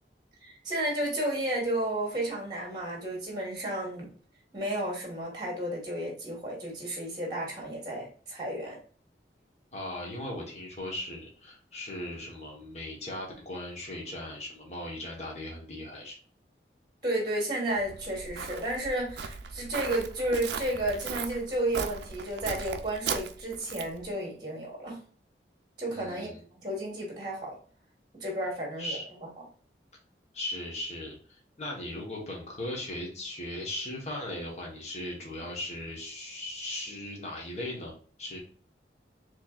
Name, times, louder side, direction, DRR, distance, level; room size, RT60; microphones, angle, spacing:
voice 1, 0.4-4.1 4.5-8.8 17.0-25.0 25.8-27.5 28.1-29.0, right 1 dB, 25° right, -1 dB, 1.4 m, -32 dB
voice 2, 9.7-16.2 25.9-26.4 28.8-29.0 30.3-37.9 38.2-38.4, left 1 dB, 40° left, -2 dB, 1.1 m, -38 dB
Walk footsteps, 17.8-24.0, right 6 dB, 75° right, 0.4 m, -37 dB
4.4 x 3.1 x 2.4 m, 0.43 s
head